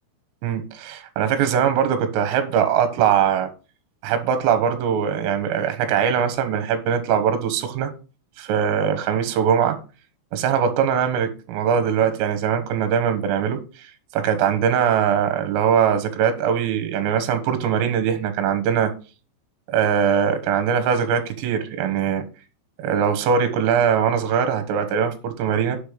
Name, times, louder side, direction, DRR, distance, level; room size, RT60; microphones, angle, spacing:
voice 1, 0.4-3.5 4.0-7.9 8.4-9.8 10.3-13.6 14.1-18.9 19.7-22.3 22.8-25.8, right 8 dB, 80° right, 3.9 m, -21 dB
10.0 x 6.4 x 5.1 m
omnidirectional pair, 5.9 m